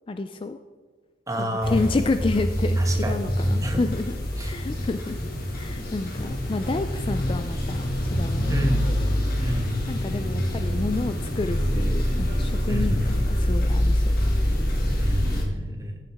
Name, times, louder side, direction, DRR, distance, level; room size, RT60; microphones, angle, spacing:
voice 1, 0.1-0.6 1.4-5.2 5.5-9.1 9.9-14.2, left 3 dB, 30° left, 9 dB, 0.3 m, -30 dB
voice 2, 1.3-1.8 2.8-3.3 3.6-3.8 4.4-4.5 6.6-6.8 8.5-8.9 9.4-9.8 12.7-13.1 15.0-16.0, equal, 15° right, 3 dB, 1.2 m, -29 dB
quiet room clock, 1.6-15.5, equal, 50° left, 1.8 m, -25 dB
14.0 x 7.0 x 3.5 m, 1.6 s
head